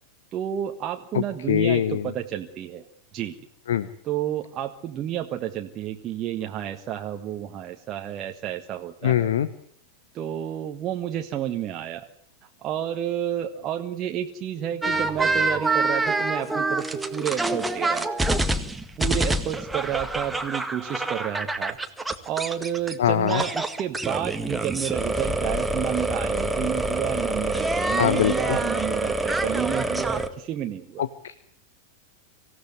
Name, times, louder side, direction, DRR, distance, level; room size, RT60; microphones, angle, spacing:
voice 1, 0.3-2.8 3.1-3.3 4.0-9.3 10.1-12.1 12.6-18.3 19.0-21.8 22.2-31.0, right 11 dB, 30° right, 3 dB, 1.5 m, -30 dB
voice 2, 1.1-2.1 3.7-3.9 9.0-9.5 23.0-23.4 28.0-28.6 31.0-31.3, left 10 dB, 60° left, 15 dB, 1.0 m, -23 dB
sound 1, 14.8-22.9 23.3-30.3, right 2 dB, 5° right, 1.9 m, -26 dB
25.5 x 16.5 x 9.5 m, 0.65 s
figure-of-eight pair, 90°, 0 cm